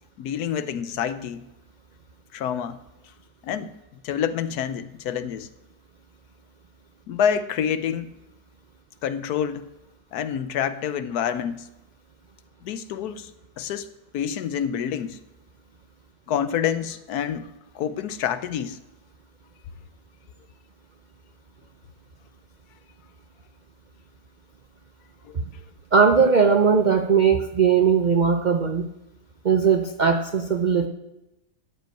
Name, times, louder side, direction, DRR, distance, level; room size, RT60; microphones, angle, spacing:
voice 1, 0.2-1.5 2.3-2.8 3.4-3.7 4.0-5.5 7.1-8.1 9.0-9.6 10.1-11.7 12.6-13.9 14.1-15.2 16.3-18.8 25.2-25.4, left 8 dB, 75° left, 1.2 m, -27 dB
voice 2, 25.9-28.9 29.4-30.9, right 6 dB, 90° right, 0.4 m, -19 dB
14.0 x 5.3 x 8.9 m
omnidirectional pair, 1.8 m